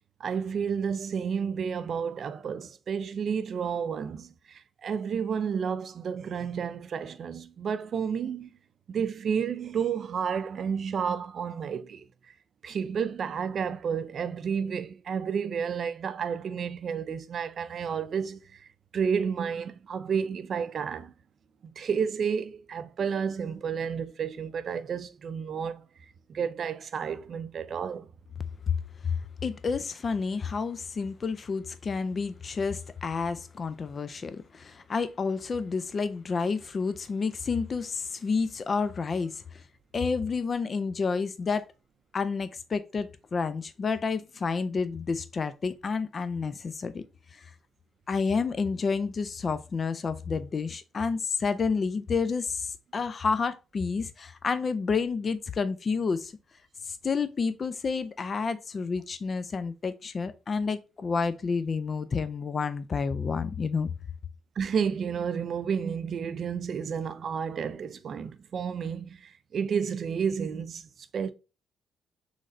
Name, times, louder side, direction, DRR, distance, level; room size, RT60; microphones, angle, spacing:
voice 1, 0.2-8.5 8.9-12.3 12.6-18.7 18.9-21.1 21.6-25.8 26.3-28.1 64.6-71.3, right 7 dB, 55° right, 0.4 m, -31 dB
voice 2, 29.0-39.6 39.9-41.7 42.1-47.0 47.3-47.5 48.1-56.3 56.8-63.9, left 5 dB, 40° left, 0.3 m, -30 dB
3.9 x 3.2 x 3.6 m
cardioid pair, 90°, 0 cm